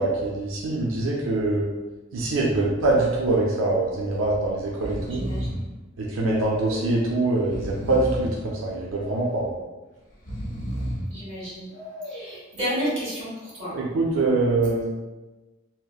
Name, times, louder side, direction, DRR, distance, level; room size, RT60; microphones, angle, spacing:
voice 1, 0.0-1.6 2.1-5.2 6.0-9.5 13.7-14.9, right 2 dB, 90° right, -4 dB, 0.4 m, -24 dB
Breathing, 2.6-2.9 3.2-3.3 4.2-4.4 4.7-5.7 6.3-6.9 7.4-8.4 9.0-9.6 10.1-11.1 11.7-12.3, equal, 45° left, 0.7 m, -33 dB
voice 2, 5.1-5.7 11.1-11.7 12.0-13.7, equal, 30° right, -9 dB, 1.4 m, -31 dB
2.7 x 2.0 x 2.3 m, 1.1 s
head